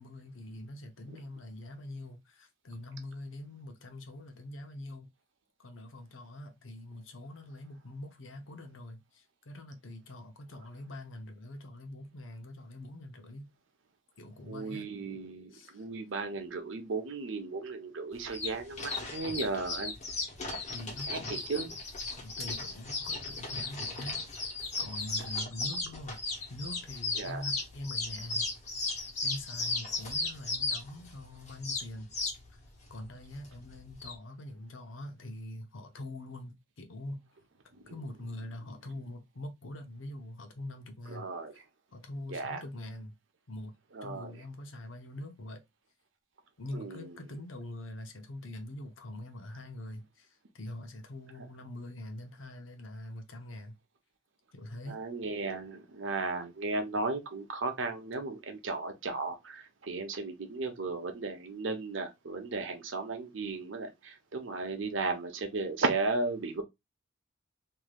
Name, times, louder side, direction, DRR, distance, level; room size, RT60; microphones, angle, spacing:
voice 1, 0.0-5.1 5.6-13.5 14.2-14.9 15.5-15.9 20.7-21.8 22.2-26.2 26.5-28.5 29.2-32.1 32.5-32.6 32.9-37.3 37.8-41.3 41.5-41.6 41.9-43.2 43.5-43.7 44.0-45.6 46.6-53.8 54.5-55.0, left 1 dB, 90° left, 0.8 m, -44 dB
voice 2, 14.5-19.9 21.1-21.2 21.5-21.7 27.2-27.4 37.7-37.9 41.1-41.5 42.3-42.6 43.9-44.3 46.7-47.0 54.9-66.6, right 3 dB, 80° right, 0.9 m, -35 dB
sound 1, 18.1-34.1, left 3 dB, 35° left, 1.1 m, -36 dB
3.2 x 2.7 x 2.3 m
head